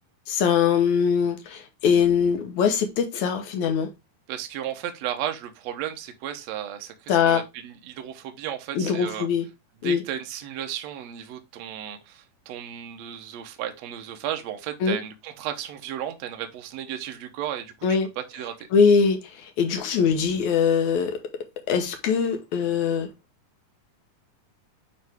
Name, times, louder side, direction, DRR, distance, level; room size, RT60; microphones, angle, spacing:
voice 1, 0.3-3.9 7.1-7.4 8.8-9.5 9.8-10.0 14.8-15.0 17.8-18.1 18.7-21.2 21.7-23.1, left 6 dB, 70° left, 2.1 m, -22 dB
voice 2, 4.3-9.3 9.8-18.7, right 10 dB, 70° right, 1.7 m, -34 dB
9.3 x 3.2 x 3.4 m
omnidirectional pair, 4.0 m